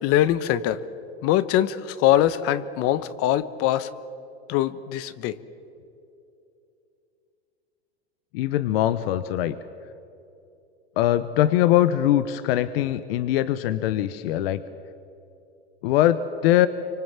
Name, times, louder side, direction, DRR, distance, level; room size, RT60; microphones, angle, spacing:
voice 1, 0.0-0.8 1.2-3.9 4.5-5.4, left 12 dB, 45° left, 15 dB, 1.1 m, -22 dB
voice 2, 8.3-9.5 11.0-14.6 15.8-16.7, left 13 dB, 65° left, 13 dB, 1.1 m, -22 dB
25.0 x 25.0 x 7.4 m, 2.8 s
hypercardioid pair, 115°, 32 cm